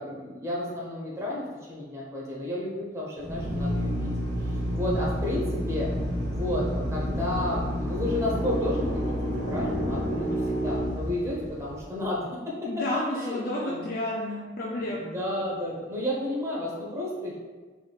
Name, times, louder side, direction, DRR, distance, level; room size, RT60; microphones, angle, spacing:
voice 1, 0.0-4.1 4.7-5.9 6.3-12.8 13.1-13.9 14.8-17.4, left 1 dB, 15° right, -5 dB, 0.9 m, -32 dB
Drill, 3.2-11.8, equal, 70° right, 1.4 m, -29 dB
voice 2, 12.7-15.1, left 1 dB, 50° left, -4 dB, 0.5 m, -31 dB
4.7 x 3.4 x 2.3 m, 1.4 s
head